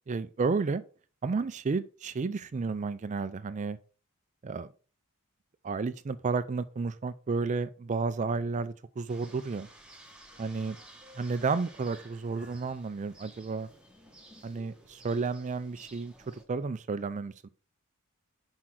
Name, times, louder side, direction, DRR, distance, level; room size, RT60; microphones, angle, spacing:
voice 1, 0.1-0.8 1.2-3.8 4.4-4.7 5.6-9.7 10.4-10.8 11.2-13.7 14.4-17.5, right 4 dB, 35° right, 0.4 m, -32 dB
sound 1, 9.1-16.4, right 1 dB, 5° right, 1.4 m, -54 dB
5.9 x 4.8 x 6.0 m
head